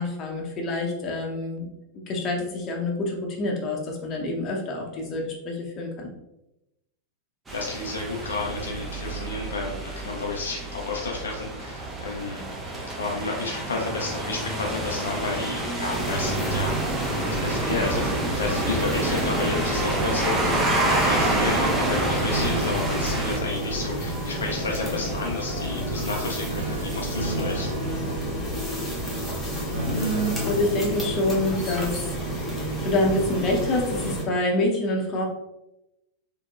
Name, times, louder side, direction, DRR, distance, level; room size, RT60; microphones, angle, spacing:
voice 1, 0.0-1.7 2.1-6.1 29.5-35.2, left 1 dB, 30° left, 0 dB, 0.8 m, -27 dB
voice 2, 7.5-12.5 13.0-27.7, left 3 dB, 70° left, 0 dB, 0.5 m, -31 dB
sound 1, 7.5-23.4, right 1 dB, 15° right, 0.7 m, -28 dB
sound 2, 15.9-34.2, right 1 dB, 5° left, 1.2 m, -30 dB
sound 3, 22.3-25.0 25.8-32.7 33.1-33.4, right 1 dB, 80° right, 0.4 m, -35 dB
3.6 x 2.8 x 2.4 m, 0.93 s
figure-of-eight pair, 90°, 0 cm